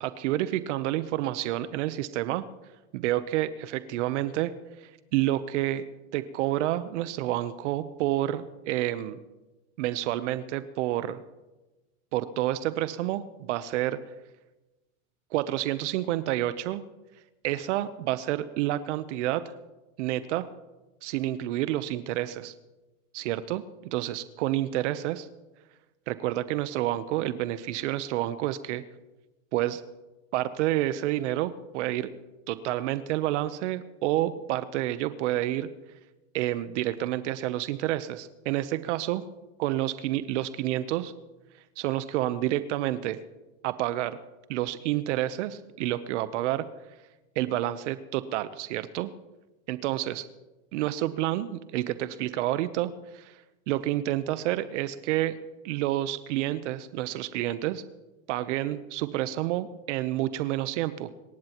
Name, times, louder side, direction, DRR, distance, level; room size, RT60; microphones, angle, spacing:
voice 1, 0.0-2.4 2.9-4.5 4.8-5.8 6.1-9.2 9.8-11.2 12.1-14.0 15.3-16.8 17.4-19.4 20.0-20.5 21.0-22.5 23.1-25.3 26.1-28.8 29.5-29.8 30.3-32.1 32.5-35.7 36.3-39.2 39.6-41.1 41.8-43.2 43.6-44.2 44.5-46.6 47.4-49.1 49.7-50.2 50.7-53.4 53.7-55.3 55.6-57.8 58.3-61.1, right 14 dB, 60° right, 13 dB, 0.9 m, -29 dB
26.0 x 13.5 x 3.0 m, 1.1 s
supercardioid pair, 140°, 41 cm